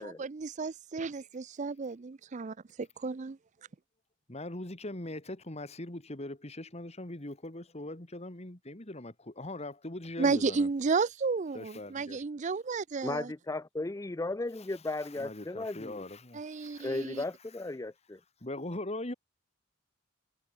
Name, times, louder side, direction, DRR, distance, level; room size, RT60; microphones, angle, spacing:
voice 1, 0.0-3.4 10.2-13.3 16.3-17.2, right 4 dB, 35° right, 0.5 m, -32 dB
voice 2, 4.3-10.7 11.5-12.2 15.2-16.9 18.4-19.1, left 1 dB, 35° left, 2.2 m, -41 dB
voice 3, 13.0-16.0 16.8-18.2, left 2 dB, 15° left, 0.5 m, -35 dB
head